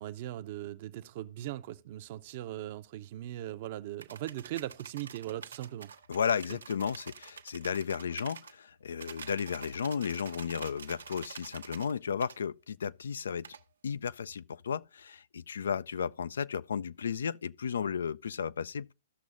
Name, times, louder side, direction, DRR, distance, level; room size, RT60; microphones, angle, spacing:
voice 1, 0.0-5.9, right 13 dB, 50° right, 0.6 m, -39 dB
sound 1, 4.0-8.5 9.0-11.9 12.2-12.4 13.4-13.6, right 6 dB, 85° right, 0.9 m, -48 dB
voice 2, 6.1-13.6 13.8-18.9, left 7 dB, 80° left, 0.4 m, -34 dB
15.5 x 6.2 x 2.5 m
hypercardioid pair, 135°, 0 cm